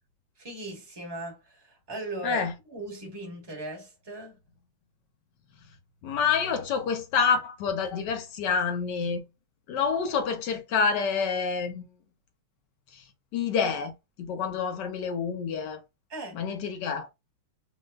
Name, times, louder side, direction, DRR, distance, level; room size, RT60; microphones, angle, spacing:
voice 1, 0.4-4.4 16.1-16.4, right 1 dB, 15° right, 0.9 m, -38 dB
voice 2, 6.0-9.2 9.7-11.9 12.9-13.0 13.3-13.9 14.2-15.8 16.3-17.1, left 6 dB, 65° left, 1.2 m, -27 dB
6.2 x 2.2 x 2.3 m
omnidirectional pair, 2.4 m